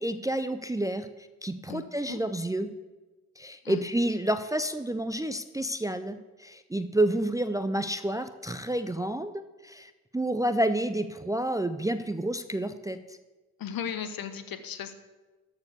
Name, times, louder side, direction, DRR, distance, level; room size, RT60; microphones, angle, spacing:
voice 1, 0.0-2.7 3.4-9.3 9.6-13.2, right 1 dB, 10° right, 10 dB, 0.5 m, -29 dB
voice 2, 13.6-14.9, left 8 dB, 55° left, 11 dB, 1.1 m, -36 dB
13.5 x 4.8 x 6.6 m, 1.2 s
hypercardioid pair, 45°, 41 cm